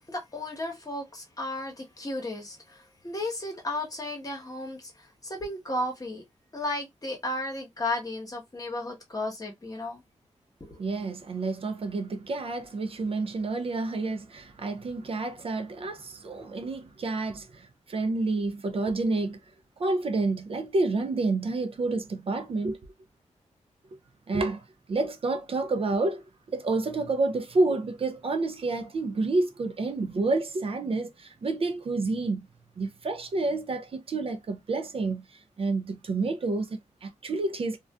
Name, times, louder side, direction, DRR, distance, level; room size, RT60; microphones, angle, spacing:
voice 1, 0.1-6.2 6.5-10.0 10.6-10.8, left 1 dB, 30° left, 1.0 m, -34 dB
voice 2, 10.8-19.4 19.8-22.8 24.3-24.6 24.9-32.5 32.8-37.8, right 3 dB, 50° right, 0.4 m, -29 dB
2.5 x 2.2 x 2.2 m
wide cardioid pair, 90°, 12 cm